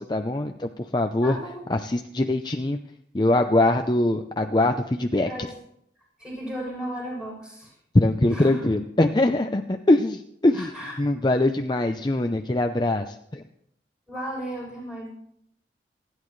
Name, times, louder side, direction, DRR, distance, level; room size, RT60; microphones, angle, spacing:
voice 1, 0.0-1.4 1.7-2.8 3.1-5.3 7.9-10.7 11.0-13.4, left 1 dB, 25° left, 6 dB, 0.6 m, -22 dB
voice 2, 1.2-1.6 5.2-5.5 6.2-7.7 8.3-8.7 10.5-10.9 14.1-15.1, right 1 dB, 5° right, -5 dB, 8.0 m, -34 dB
27.5 x 11.0 x 3.2 m, 0.72 s
head